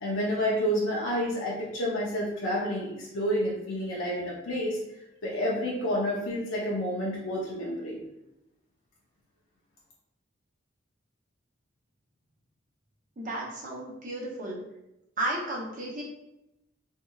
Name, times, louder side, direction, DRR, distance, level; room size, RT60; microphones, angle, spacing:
voice 1, 0.0-4.8 5.2-8.0, equal, 85° left, -4 dB, 0.7 m, -29 dB
voice 2, 13.2-14.6 15.2-16.0, right 1 dB, 40° right, -3 dB, 0.7 m, -33 dB
3.6 x 3.2 x 2.3 m, 0.89 s
head